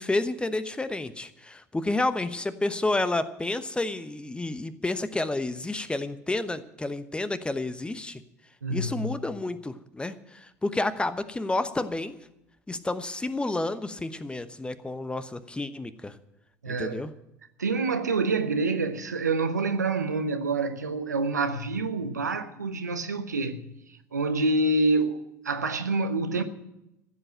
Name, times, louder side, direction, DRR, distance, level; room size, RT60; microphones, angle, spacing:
voice 1, 0.0-8.2 8.7-12.1 12.7-16.1 16.7-17.1, left 2 dB, 10° left, 1.0 m, -30 dB
voice 2, 8.6-9.2 16.6-17.0 17.6-23.7 24.1-26.4, right 3 dB, 85° right, 1.0 m, -27 dB
15.0 x 7.9 x 8.9 m
figure-of-eight pair, 70°, 9 cm